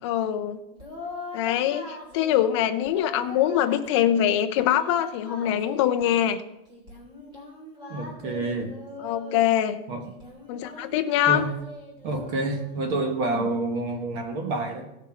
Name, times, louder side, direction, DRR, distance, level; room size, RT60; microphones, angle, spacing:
voice 1, 0.0-0.6 1.3-6.4 9.0-9.8 10.5-11.4 13.3-13.5, left 11 dB, 30° left, 8 dB, 0.6 m, -23 dB
Singing, 0.7-2.5 2.8-4.2 4.5-6.3 6.7-9.5 10.0-12.8, left 2 dB, 15° right, 2.9 m, -41 dB
voice 2, 7.9-8.8 9.9-10.1 11.3-11.5 12.0-14.9, right 2 dB, 30° right, 5 dB, 1.2 m, -28 dB
16.5 x 6.1 x 4.3 m, 0.89 s
supercardioid pair, 170°, 33 cm